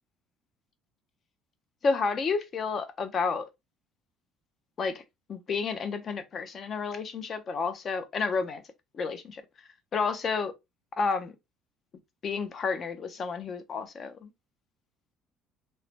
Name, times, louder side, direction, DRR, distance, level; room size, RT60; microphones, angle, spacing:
voice 1, 1.8-3.5 4.8-5.0 5.3-8.6 8.9-9.4 9.9-10.5 11.0-11.3 12.2-14.3, left 4 dB, 35° left, 0.5 m, -30 dB
3.1 x 2.1 x 2.7 m
cardioid pair, 125°, 0 cm